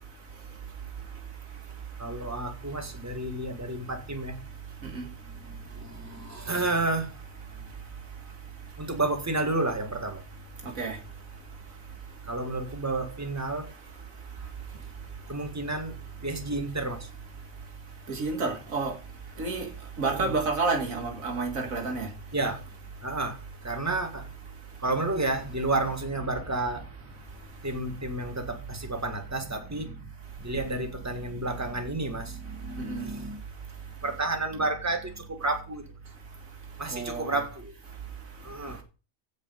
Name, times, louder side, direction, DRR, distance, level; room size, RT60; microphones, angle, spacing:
voice 1, 2.0-4.4 5.4-7.1 7.6-7.8 8.8-10.2 12.3-13.7 15.3-16.0 16.2-17.1 20.1-20.3 22.3-22.6 23.0-24.3 24.8-26.9 27.6-30.1 30.4-33.4 34.0-35.9 36.8-37.7 38.4-38.8, right 2 dB, 10° right, 1.8 m, -31 dB
voice 2, 18.1-18.9 19.4-19.7 20.0-22.1 32.9-33.1 36.9-37.3, right 3 dB, 85° right, 2.3 m, -29 dB
16.0 x 5.3 x 5.3 m
omnidirectional pair, 1.4 m